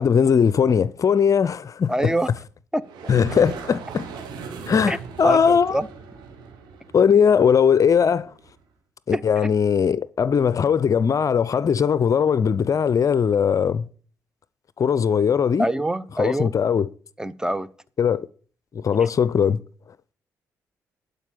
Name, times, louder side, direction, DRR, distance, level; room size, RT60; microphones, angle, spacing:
voice 1, 0.0-2.1 3.1-4.1 4.7-5.8 6.9-8.3 9.1-13.8 14.8-15.7 16.2-16.9 18.0-18.3 18.7-19.6, left 7 dB, 45° left, 0.6 m, -19 dB
voice 2, 1.9-2.3 2.7-2.8 4.9-5.0 5.2-5.9 9.1-9.2 15.6-16.5 17.2-17.7, right 1 dB, 10° right, 0.9 m, -24 dB
sound 1, 2.8-8.5, right 5 dB, 75° right, 2.2 m, -38 dB
12.0 x 5.3 x 8.5 m
hypercardioid pair, 45°, 8 cm